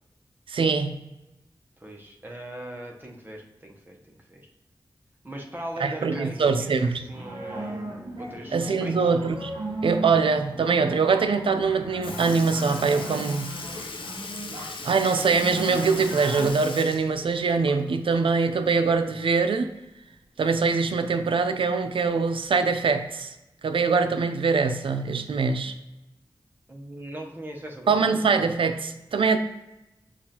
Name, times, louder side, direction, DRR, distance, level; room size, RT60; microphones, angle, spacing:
voice 1, 0.5-1.0 5.8-7.0 8.5-9.5 9.8-13.6 14.8-19.7 20.4-23.3 23.6-25.7 27.9-29.4, right 4 dB, 80° right, 8 dB, 0.4 m, -23 dB
voice 2, 1.8-4.5 5.2-9.1 26.7-27.9, right 1 dB, 25° right, 0 dB, 0.8 m, -40 dB
sound 1, 6.9-16.5, right 2 dB, 65° right, 1.4 m, -37 dB
Sink (filling or washing) / Liquid, 11.6-11.7 12.0-18.1 18.5-18.6 20.1-20.2 21.1-21.2 22.1-22.3 23.1-23.2, left 3 dB, 75° left, 0.6 m, -38 dB
7.0 x 2.4 x 2.8 m, 0.96 s
wide cardioid pair, 60°, 9 cm